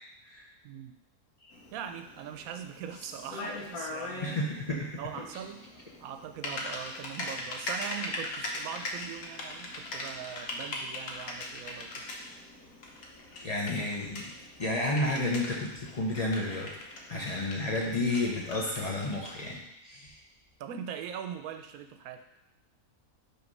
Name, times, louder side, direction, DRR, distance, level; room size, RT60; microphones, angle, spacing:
voice 1, 0.6-0.9 1.7-4.4 5.0-5.7 6.0-12.0 17.1-17.3 20.6-22.2, right 8 dB, 85° right, 7 dB, 1.0 m, -41 dB
Typing, 1.5-19.6, left 2 dB, 80° left, 1.4 m, -41 dB
voice 2, 4.2-4.9 13.4-16.7 17.1-20.2, left 2 dB, 30° left, -2 dB, 0.9 m, -31 dB
5.8 x 3.3 x 5.3 m, 0.88 s
omnidirectional pair, 1.5 m